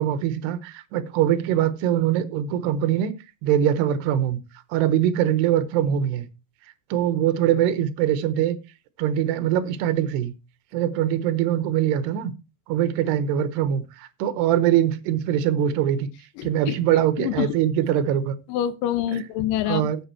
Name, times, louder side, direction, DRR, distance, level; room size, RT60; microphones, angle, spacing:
voice 1, 0.0-3.1 3.4-4.4 4.7-6.3 6.9-8.6 9.0-10.3 10.7-12.3 12.7-16.1 16.4-18.3 19.7-20.0, right 10 dB, 75° right, 11 dB, 3.1 m, -22 dB
voice 2, 16.4-16.8 17.2-17.6 18.5-19.9, left 11 dB, 90° left, 11 dB, 1.9 m, -26 dB
15.0 x 6.2 x 4.5 m, 0.28 s
omnidirectional pair, 5.1 m